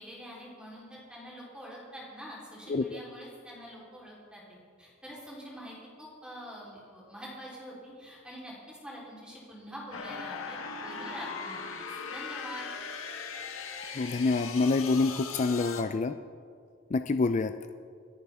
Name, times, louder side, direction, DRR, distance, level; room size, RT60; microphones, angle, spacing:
voice 1, 0.0-12.7, equal, 5° right, -6 dB, 3.8 m, -45 dB
sound 1, 9.9-15.8, left 5 dB, 85° left, 1.4 m, -39 dB
voice 2, 14.0-16.2 16.9-17.5, left 3 dB, 35° left, 9 dB, 0.4 m, -27 dB
27.0 x 10.5 x 3.6 m, 2.2 s
head